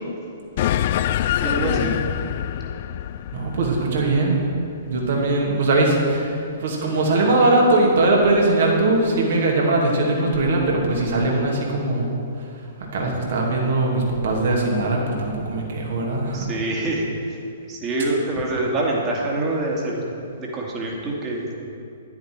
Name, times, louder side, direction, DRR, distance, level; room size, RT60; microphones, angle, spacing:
sound 1, 0.6-5.3, left 11 dB, 45° left, 0.3 m, -25 dB
voice 1, 1.4-2.1 16.3-17.4 17.7-20.0 20.4-21.5, right 2 dB, 25° right, -2 dB, 2.2 m, -25 dB
voice 2, 3.3-4.4 4.8-6.3 6.6-12.1 12.9-16.4, right 2 dB, 55° right, -1 dB, 2.4 m, -20 dB
10.5 x 10.5 x 4.7 m, 2.6 s
figure-of-eight pair, 115°, 0 cm